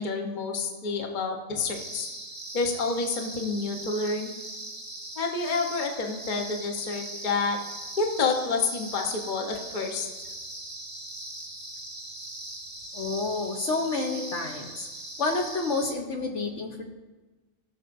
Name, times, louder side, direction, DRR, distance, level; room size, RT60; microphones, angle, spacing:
voice 1, 0.0-2.1 2.5-4.3 5.2-7.6 8.0-10.1, left 4 dB, 40° left, 2 dB, 1.0 m, -29 dB
sound 1, 1.7-15.9, right 1 dB, 20° right, 0.9 m, -40 dB
voice 2, 12.9-14.9 15.2-16.8, left 3 dB, 65° left, 2 dB, 1.1 m, -29 dB
18.0 x 6.3 x 2.6 m, 1.2 s
omnidirectional pair, 1.5 m